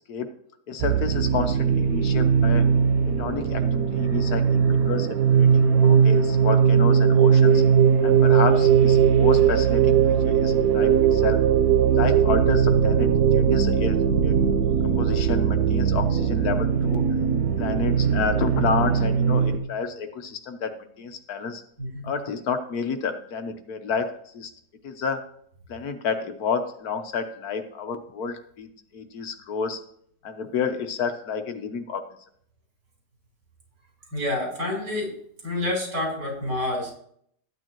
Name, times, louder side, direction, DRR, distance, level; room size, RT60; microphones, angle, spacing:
voice 1, 0.7-2.6 3.2-7.6 8.0-10.0 10.2-11.4 11.9-14.0 14.2-14.3 14.8-17.0 17.6-21.6 22.0-24.1 24.3-24.5 24.8-25.2 25.7-29.8 30.2-32.0, left 5 dB, 65° left, 8 dB, 1.4 m, -30 dB
sound 1, 0.8-19.6, right 7 dB, 65° right, 1.3 m, -19 dB
voice 2, 21.8-22.1 34.1-35.2 35.4-37.0, left 1 dB, 85° right, -2 dB, 5.1 m, -28 dB
13.0 x 9.1 x 3.0 m, 0.65 s
omnidirectional pair, 1.8 m